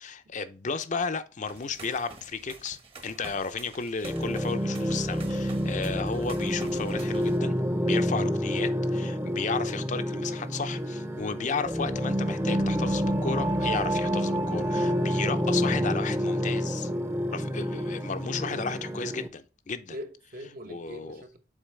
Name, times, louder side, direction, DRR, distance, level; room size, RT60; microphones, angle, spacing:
voice 1, 0.0-16.9 17.3-19.9 20.7-21.2, left 5 dB, 45° left, 0.6 m, -34 dB
sound 1, 1.4-7.4, right 3 dB, 35° right, 1.1 m, -48 dB
sound 2, 4.0-19.3, equal, 15° right, 0.7 m, -28 dB
voice 2, 19.9-21.4, equal, 55° right, 1.1 m, -43 dB
7.3 x 4.5 x 3.3 m
head